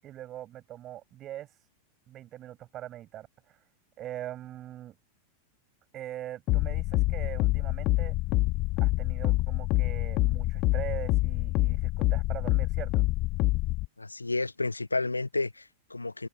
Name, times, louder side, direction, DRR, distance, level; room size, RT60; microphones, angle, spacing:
voice 1, 0.0-1.5 2.1-3.6 4.0-5.0 5.9-8.2 8.8-13.1, right 13 dB, 30° right, 8.0 m, -42 dB
sound 1, 6.5-13.9, left 20 dB, 40° left, 1.0 m, -26 dB
voice 2, 14.0-16.3, left 3 dB, 80° left, 1.0 m, -31 dB
figure-of-eight pair, 90°, 0 cm